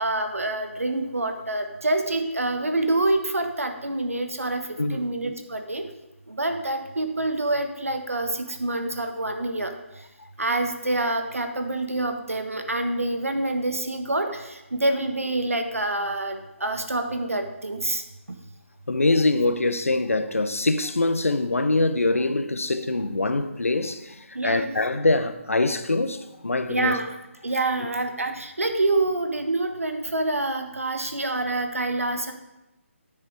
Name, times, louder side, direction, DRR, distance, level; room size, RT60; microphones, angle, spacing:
voice 1, 0.0-4.6 4.9-5.8 6.3-9.7 10.4-18.0 24.3-24.7 26.7-27.1 27.4-32.3, right 2 dB, 85° right, 1.4 m, -26 dB
voice 2, 4.8-5.1 10.2-10.3 18.9-27.0 27.8-27.9, left 2 dB, 80° left, 0.8 m, -24 dB
9.7 x 7.0 x 4.7 m
figure-of-eight pair, 145°, 7 cm